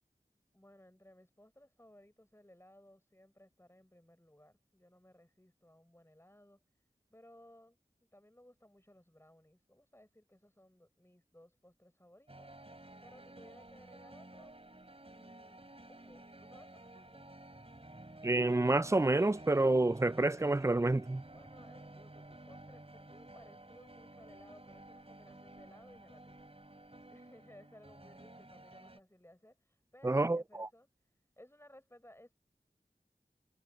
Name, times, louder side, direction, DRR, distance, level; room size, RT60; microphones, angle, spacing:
voice 1, 0.5-6.6 7.1-7.8 8.1-14.6 15.1-15.6 15.9-17.4 21.3-26.5 27.1-32.3, left 1 dB, 15° left, 6.8 m, -60 dB
sound 1, 12.3-29.0, right 1 dB, 40° right, 3.1 m, -53 dB
voice 2, 18.2-21.2 30.0-30.7, right 2 dB, 20° right, 0.4 m, -28 dB
wide cardioid pair, 50°, 16 cm